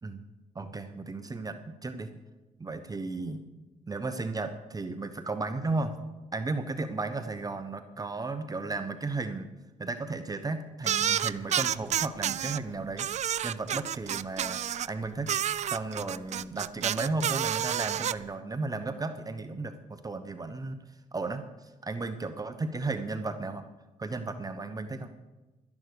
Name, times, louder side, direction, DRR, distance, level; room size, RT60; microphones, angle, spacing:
voice 1, 0.5-2.1 2.6-3.4 3.9-6.0 6.3-9.5 9.8-15.4 15.6-20.8 21.1-23.6 24.0-25.1, right 3 dB, 25° right, 9 dB, 1.0 m, -34 dB
sound 1, 10.8-12.6 13.0-14.9 15.3-18.1, right 10 dB, 55° right, 0.4 m, -29 dB
12.5 x 11.0 x 6.6 m, 1.2 s
cardioid pair, 90°, 14 cm